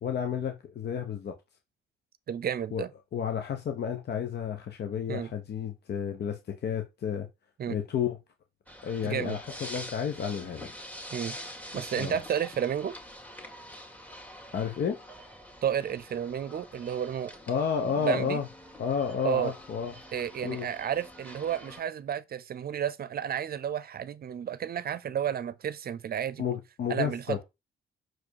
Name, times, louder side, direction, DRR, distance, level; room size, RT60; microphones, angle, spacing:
voice 1, 0.0-1.3 2.7-2.8 3.1-7.3 7.7-8.2 8.8-10.7 12.0-12.2 14.5-15.0 17.5-18.5 18.8-19.9 20.4-20.7 26.4-27.4, left 7 dB, 55° left, 1.1 m, -31 dB
voice 2, 2.3-2.9 5.1-5.3 7.6-7.8 9.0-9.4 11.1-11.4 11.7-12.9 15.6-17.3 18.0-18.4 19.2-19.5 20.1-26.4 26.9-27.4, right 9 dB, 50° right, 0.6 m, -31 dB
sound 1, 8.7-21.8, equal, 10° left, 2.1 m, -45 dB
6.2 x 4.8 x 4.7 m
cardioid pair, 90°, 20 cm